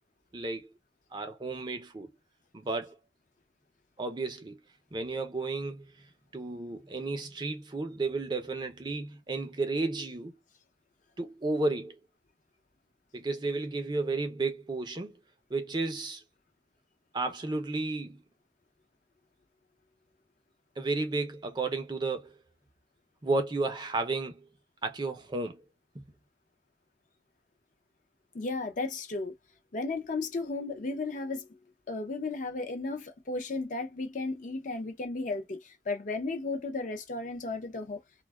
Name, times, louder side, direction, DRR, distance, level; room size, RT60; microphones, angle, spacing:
voice 1, 0.3-0.7 1.1-2.1 2.5-3.0 4.0-4.6 4.9-10.3 11.2-12.0 13.1-15.2 15.5-16.2 17.1-18.2 20.8-22.4 23.2-24.5 24.8-25.6 25.9-26.0, right 3 dB, 25° right, 0.5 m, -33 dB
voice 2, 28.3-29.3 29.7-31.6 31.9-38.0, left 3 dB, 45° left, 0.5 m, -34 dB
2.4 x 2.2 x 2.3 m
head